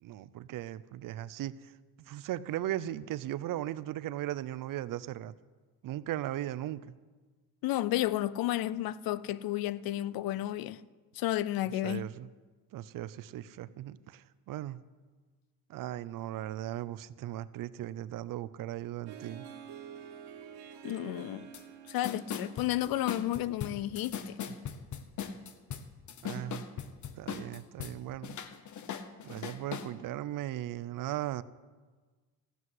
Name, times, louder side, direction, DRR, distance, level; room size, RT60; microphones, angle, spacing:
voice 1, 0.0-1.7 2.1-5.3 5.8-6.9 11.8-12.3 12.7-14.8 15.7-19.4 26.2-26.7 27.2-28.4 29.2-31.4, right 13 dB, 60° right, 0.6 m, -37 dB
voice 2, 7.6-10.8 11.1-12.0 20.8-21.5 21.9-24.4, left 14 dB, 65° left, 0.6 m, -32 dB
Harp, 19.1-24.3, right 8 dB, 85° right, 1.8 m, -49 dB
sound 1, 21.5-21.6 21.9-27.9 28.2-29.9, left 7 dB, 50° left, 1.0 m, -39 dB
14.5 x 7.8 x 9.6 m
cardioid pair, 135°, 38 cm